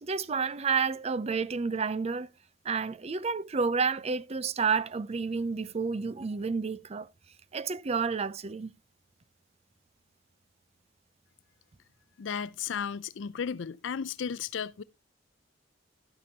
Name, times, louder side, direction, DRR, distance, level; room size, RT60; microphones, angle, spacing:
voice 1, 0.0-2.3 2.7-7.1 7.5-8.7, right 5 dB, 35° right, 0.5 m, -30 dB
voice 2, 12.2-14.8, left 7 dB, 70° left, 0.4 m, -34 dB
12.5 x 8.5 x 2.8 m
head